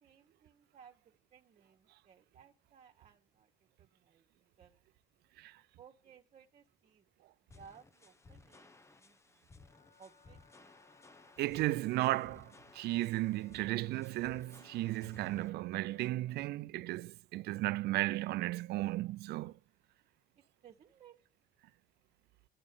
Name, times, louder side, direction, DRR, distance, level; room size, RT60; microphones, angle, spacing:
voice 1, 0.0-3.5 3.8-4.7 5.8-7.0 7.5-9.2 10.0-10.7 20.4-21.2, right 7 dB, 45° right, 1.4 m, -60 dB
sound 1, 7.5-15.5, left 3 dB, 15° left, 0.9 m, -59 dB
Wind instrument woodwind instrument, 9.6-16.6, left 5 dB, 60° left, 3.7 m, -67 dB
voice 2, 11.4-19.6, right 17 dB, 75° right, 0.5 m, -35 dB
11.0 x 7.2 x 6.8 m
cardioid pair, 110°, 17 cm